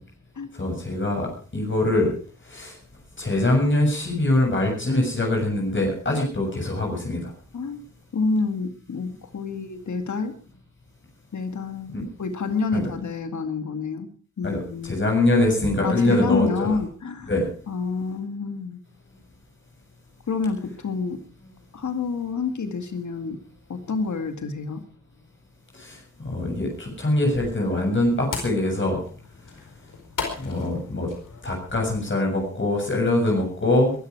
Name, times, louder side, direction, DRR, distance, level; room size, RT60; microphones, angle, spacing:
voice 1, 0.6-2.1 2.5-2.7 3.2-7.3 11.9-12.0 12.7-12.8 14.4-16.7 17.3-17.5 25.8-26.0 26.2-29.0 30.4-31.1 31.4-33.9, left 1 dB, 40° left, 0 dB, 7.4 m, -23 dB
voice 2, 8.1-10.3 11.3-14.1 14.4-15.0 15.8-17.3 17.7-18.8 20.3-21.2 21.7-23.4 23.7-24.8 33.7-33.8, left 4 dB, 70° left, 8 dB, 2.2 m, -28 dB
sound 1, 26.7-32.1, left 5 dB, 90° left, 4.8 m, -38 dB
22.0 x 13.0 x 4.8 m, 0.40 s
wide cardioid pair, 80°, 31 cm